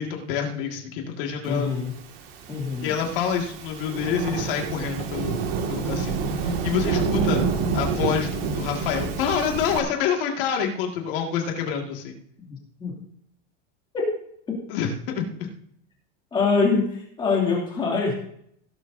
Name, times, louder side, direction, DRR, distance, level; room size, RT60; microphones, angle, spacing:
voice 1, 0.0-1.8 2.8-7.4 7.7-12.2 14.7-15.5, left 7 dB, 60° left, 1 dB, 2.0 m, -27 dB
voice 2, 1.4-1.9 2.5-2.9 12.4-12.9 13.9-14.1 14.5-14.6 16.3-18.1, left 4 dB, 15° left, -3 dB, 2.5 m, -24 dB
Thunderstorm / Rain, 2.1-9.8, right 5 dB, 70° right, 2.0 m, -28 dB
16.5 x 12.0 x 2.7 m, 0.68 s
supercardioid pair, 180°, 31 cm